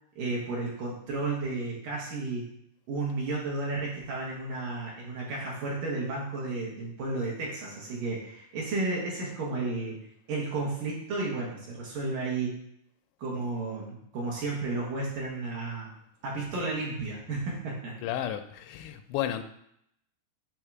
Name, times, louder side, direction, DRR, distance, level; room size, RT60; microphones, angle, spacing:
voice 1, 0.2-2.4 2.9-10.0 10.3-12.5 13.2-15.9 16.2-17.9, right 3 dB, 60° right, -4 dB, 2.8 m, -32 dB
voice 2, 18.0-19.4, left 11 dB, 85° left, 8 dB, 2.8 m, -33 dB
9.0 x 3.5 x 6.1 m, 0.73 s
omnidirectional pair, 5.2 m